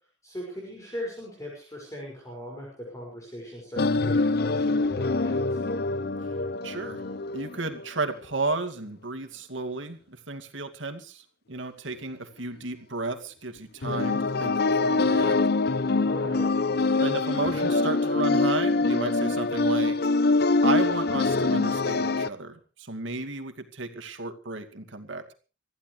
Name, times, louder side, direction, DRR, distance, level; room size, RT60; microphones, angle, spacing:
voice 1, 0.2-5.6 16.0-16.5, equal, 15° left, -3 dB, 6.1 m, -39 dB
sound 1, 3.8-7.9 13.8-22.3, left 3 dB, 55° left, 0.7 m, -24 dB
voice 2, 6.6-7.0 7.3-15.4 17.0-20.0 20.6-25.3, right 3 dB, 75° right, 6 dB, 2.4 m, -33 dB
25.0 x 15.0 x 3.3 m, 0.35 s
head